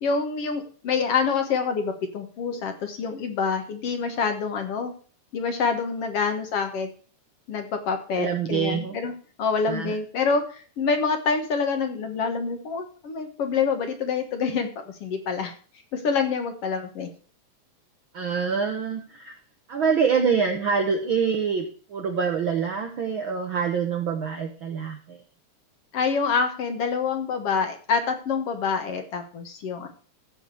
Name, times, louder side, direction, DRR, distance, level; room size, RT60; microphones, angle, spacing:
voice 1, 0.0-4.9 5.3-6.9 7.5-9.1 9.4-15.5 15.9-17.1 25.9-29.9, left 5 dB, 55° left, 6 dB, 2.0 m, -26 dB
voice 2, 8.2-9.0 9.7-10.0 18.1-19.3 19.7-25.2, right 6 dB, 65° right, 4 dB, 1.3 m, -25 dB
14.5 x 5.0 x 6.4 m, 0.41 s
omnidirectional pair, 3.5 m